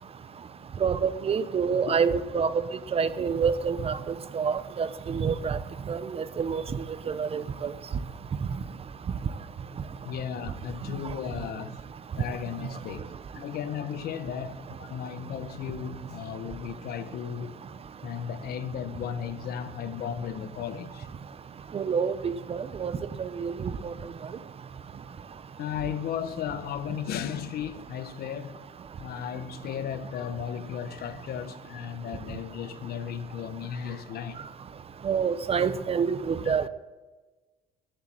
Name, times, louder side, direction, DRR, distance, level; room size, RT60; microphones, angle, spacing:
voice 1, 0.8-2.5 2.9-5.6 5.9-7.7 21.7-22.9 23.2-23.9 35.0-36.7, right 6 dB, 35° right, 0.7 m, -27 dB
voice 2, 10.0-11.8 12.2-17.5 18.0-21.1 22.8-22.9 25.6-28.6 29.0-34.5 36.4-36.5, left 8 dB, 65° left, 1.1 m, -35 dB
13.5 x 8.0 x 7.8 m
cardioid pair, 110°, 17 cm